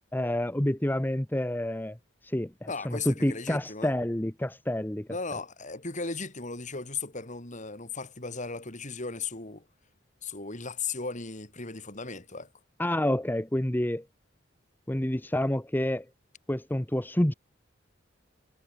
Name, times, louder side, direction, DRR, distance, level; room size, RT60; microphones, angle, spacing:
voice 1, 0.1-2.0 2.2-5.1 12.8-14.0 14.9-16.1 16.5-17.3, left 1 dB, 10° left, 1.0 m, -28 dB
voice 2, 2.7-3.9 5.1-9.6 10.2-12.5, left 4 dB, 40° left, 4.4 m, -36 dB
head